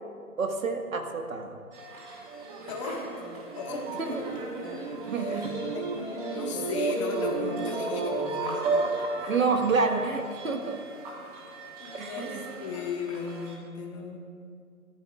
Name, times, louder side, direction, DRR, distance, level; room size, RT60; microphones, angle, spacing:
voice 1, 0.4-1.6 4.0-4.2 5.1-5.5 9.3-10.8 11.9-12.4, right 4 dB, 65° right, 4 dB, 1.7 m, -28 dB
sound 1, 1.7-13.6, right 2 dB, 25° right, 2.5 m, -44 dB
sound 2, 2.1-9.4, right 3 dB, 45° right, 2.0 m, -32 dB
voice 2, 2.7-3.1 3.5-4.5 4.7-5.8 6.3-9.4 11.8-14.3, left 4 dB, 20° left, 0 dB, 1.6 m, -37 dB
29.5 x 14.0 x 2.4 m, 2.2 s
figure-of-eight pair, 155°, 44 cm